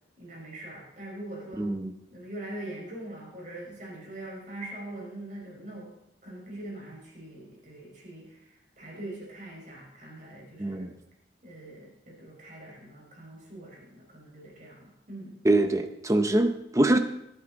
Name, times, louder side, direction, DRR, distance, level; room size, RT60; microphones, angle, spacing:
voice 1, 0.2-1.7 2.1-5.9 6.2-10.9 11.4-15.4, right 1 dB, 40° right, -2 dB, 4.8 m, -42 dB
voice 2, 1.6-1.9 10.6-10.9 15.4-17.0, right 1 dB, 15° right, 8 dB, 0.7 m, -24 dB
22.5 x 8.8 x 3.9 m, 0.81 s
head